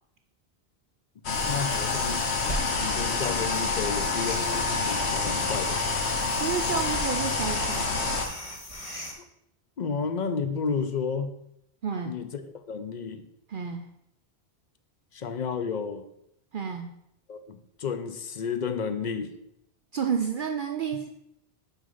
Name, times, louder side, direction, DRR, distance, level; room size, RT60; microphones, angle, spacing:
sound 1, 1.2-8.3, left 4 dB, 75° left, 1.2 m, -28 dB
sound 2, 1.3-9.1, equal, 30° left, 1.4 m, -38 dB
voice 1, 1.4-2.3 2.7-5.8 9.8-11.3 12.0-12.4 12.7-13.3 15.1-16.0 17.3-19.3, left 5 dB, 50° left, 9 dB, 0.6 m, -32 dB
voice 2, 6.3-8.1 11.8-12.2 13.5-13.9 16.5-16.9 19.9-21.1, right 7 dB, 60° right, 5 dB, 0.6 m, -30 dB
6.3 x 5.2 x 5.4 m, 0.78 s
omnidirectional pair, 1.1 m